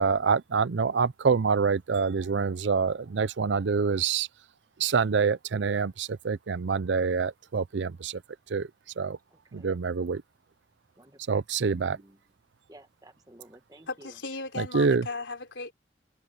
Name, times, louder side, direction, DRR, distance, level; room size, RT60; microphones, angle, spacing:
voice 1, 0.0-4.3 4.8-8.2 8.5-8.7 9.0-9.2 9.5-10.2 11.3-12.0 14.6-15.0, right 5 dB, 80° right, 0.5 m, -26 dB
voice 2, 9.3-9.7 11.0-12.2 12.7-14.1, right 1 dB, 20° right, 1.3 m, -53 dB
voice 3, 13.9-15.7, left 3 dB, 90° left, 4.3 m, -36 dB
head